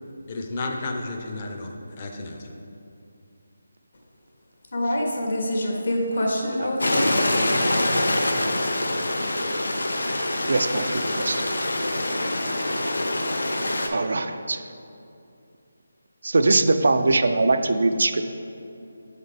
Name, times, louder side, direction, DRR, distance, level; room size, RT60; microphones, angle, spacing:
voice 1, 0.3-2.5, left 2 dB, 30° left, 2 dB, 0.6 m, -32 dB
voice 2, 4.7-7.2, left 1 dB, 65° left, -1 dB, 1.2 m, -25 dB
Stream, 6.8-13.9, left 1 dB, 85° left, 0.6 m, -25 dB
voice 3, 10.5-11.5 13.9-14.6 16.2-18.3, right 3 dB, 65° right, 9 dB, 0.3 m, -22 dB
6.9 x 4.0 x 3.5 m, 2.6 s
figure-of-eight pair, 165°, 0 cm